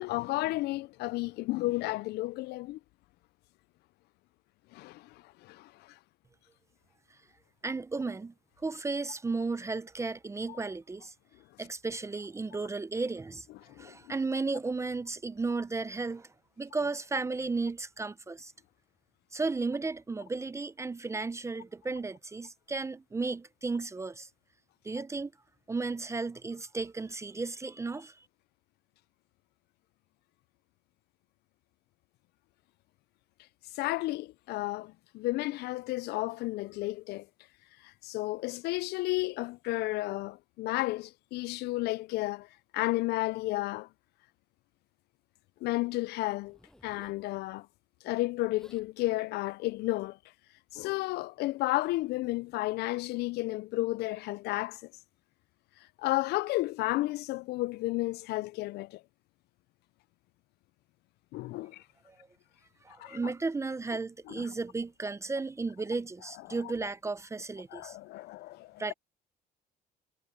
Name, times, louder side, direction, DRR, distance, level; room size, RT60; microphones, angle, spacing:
voice 1, 0.0-2.8 4.7-6.0 10.5-10.6 13.6-14.0 33.8-37.3 37.8-42.5 42.7-43.9 45.6-47.7 48.0-50.2 50.7-54.8 56.0-59.0 61.3-61.8 63.0-63.3 64.3-64.5 66.5-66.7 67.7-68.8, left 19 dB, 75° left, 0.4 m, -32 dB
voice 2, 7.6-8.3 8.6-11.1 11.6-13.5 13.8-16.3 16.6-18.5 19.3-24.3 24.8-25.3 25.7-28.2 62.1-62.3 62.8-68.0 68.8-68.9, right 3 dB, 15° right, 0.6 m, -34 dB
Zipper (clothing), 46.4-47.3 48.2-48.3 48.5-48.9 49.6-49.9, left 1 dB, 5° left, 7.7 m, -59 dB
cardioid pair, 110°, 17 cm